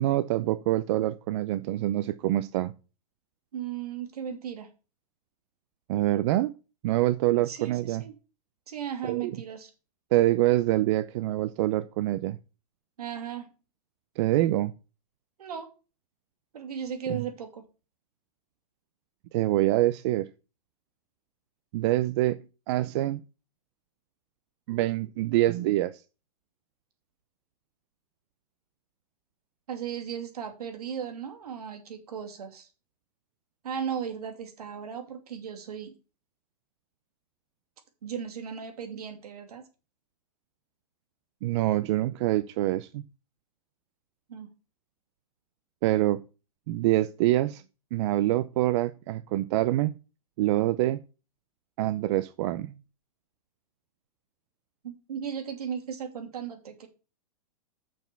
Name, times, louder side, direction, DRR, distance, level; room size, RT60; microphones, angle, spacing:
voice 1, 0.0-2.7 5.9-6.5 6.8-8.0 9.0-9.4 10.1-12.4 14.2-14.7 17.1-17.2 19.3-20.3 21.7-22.4 22.7-23.2 24.7-26.0 41.4-43.0 45.8-46.2 46.7-47.6 47.9-50.0 50.4-51.0 51.8-52.7, right 15 dB, 50° right, 0.6 m, -25 dB
voice 2, 3.5-4.7 7.3-8.1 8.7-9.7 13.0-13.5 15.4-15.7 16.5-17.6 29.7-32.7 33.6-35.9 38.0-39.6 44.3-44.5 54.8-56.9, right 8 dB, 80° right, 2.6 m, -36 dB
6.7 x 6.0 x 6.9 m
hypercardioid pair, 135°, 19 cm